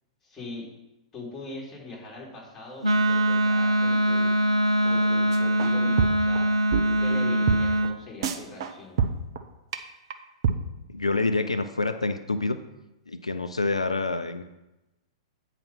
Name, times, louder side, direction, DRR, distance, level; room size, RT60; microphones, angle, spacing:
voice 1, 0.2-0.7 1.1-4.4 4.8-6.5 6.8-9.0, left 2 dB, 15° left, -4 dB, 3.3 m, -41 dB
Wind instrument woodwind instrument, 2.8-8.0, right 1 dB, 85° right, 0.6 m, -23 dB
sound 1, 5.3-5.7 6.0-6.4 6.7-6.8 7.1-7.2 7.5-7.6 7.8-7.9 8.2-8.7 9.0-9.4 9.7-9.8 10.1-10.2 10.4-10.6, right 7 dB, 55° right, 0.8 m, -25 dB
voice 2, 10.9-12.6 13.1-14.4, left 3 dB, 85° left, 8 dB, 0.5 m, -27 dB
9.0 x 4.9 x 6.1 m, 0.96 s
figure-of-eight pair, 105°, 3 cm